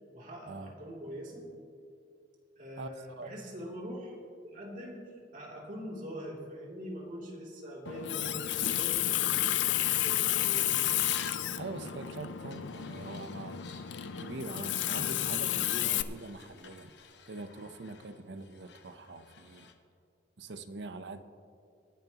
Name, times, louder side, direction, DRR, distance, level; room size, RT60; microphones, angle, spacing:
voice 1, 0.1-1.4 2.6-4.2 4.4-10.8, equal, 50° right, -3 dB, 2.9 m, -43 dB
Water tap faucet, 7.8-16.0, left 12 dB, 85° left, 0.5 m, -31 dB
sound 1, 10.8-11.5 12.5-19.7, left 7 dB, 65° left, 1.0 m, -53 dB
voice 2, 11.3-13.7 14.2-16.9 17.3-19.7 20.4-21.2, right 2 dB, 70° right, 10 dB, 0.8 m, -43 dB
24.0 x 10.5 x 3.0 m, 2.5 s
head